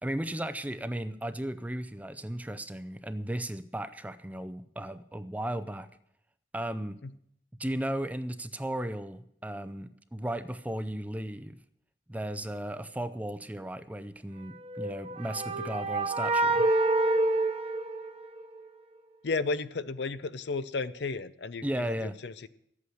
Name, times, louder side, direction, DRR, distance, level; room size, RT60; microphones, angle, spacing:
voice 1, 0.0-5.9 6.5-7.0 7.6-11.6 12.1-16.6 21.6-22.2, right 1 dB, 10° right, 12 dB, 0.5 m, -35 dB
sound 1, 14.7-18.6, right 2 dB, 35° right, 1.0 m, -27 dB
voice 2, 19.2-22.5, left 3 dB, 70° left, 15 dB, 0.6 m, -33 dB
12.5 x 8.6 x 7.8 m, 0.74 s
head